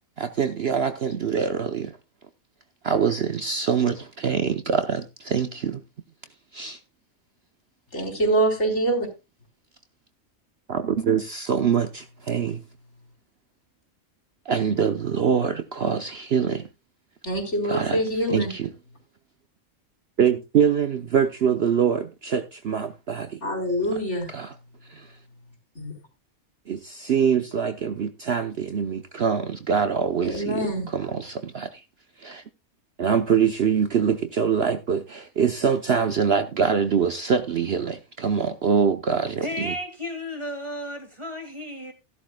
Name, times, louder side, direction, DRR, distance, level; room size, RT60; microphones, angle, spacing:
voice 1, 0.2-2.0 2.8-5.8 6.5-6.8 10.7-12.6 14.5-16.6 17.7-18.0 18.3-18.7 20.2-23.4 24.3-24.5 24.9-25.1 26.7-31.8 32.2-32.4 33.0-39.7, right 7 dB, 50° right, 0.9 m, -24 dB
voice 2, 7.9-9.1 17.2-18.5 23.4-24.3 25.8-25.9 30.2-30.9, right 1 dB, 55° left, 4.3 m, -25 dB
voice 3, 39.4-41.9, left 1 dB, 20° right, 2.5 m, -33 dB
16.0 x 11.5 x 2.2 m
omnidirectional pair, 1.4 m